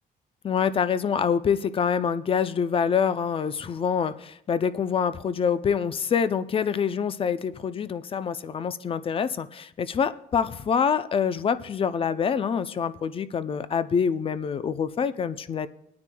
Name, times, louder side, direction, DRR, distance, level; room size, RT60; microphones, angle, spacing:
voice 1, 0.4-15.7, left 7 dB, 35° left, 13 dB, 0.5 m, -26 dB
21.5 x 9.5 x 2.3 m, 0.72 s
cardioid pair, 110°, 17 cm